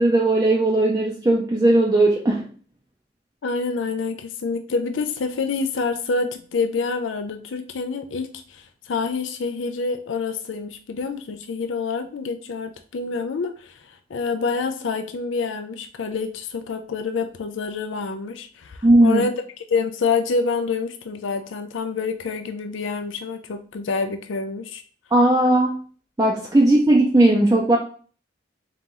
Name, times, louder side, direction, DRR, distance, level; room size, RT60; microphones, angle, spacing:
voice 1, 0.0-2.5 18.8-19.2 25.1-25.8 26.2-27.8, right 1 dB, 15° right, -2 dB, 0.4 m, -17 dB
voice 2, 3.4-19.4 19.7-24.8, left 4 dB, 85° left, 7 dB, 0.4 m, -27 dB
3.8 x 3.0 x 3.8 m, 0.42 s
head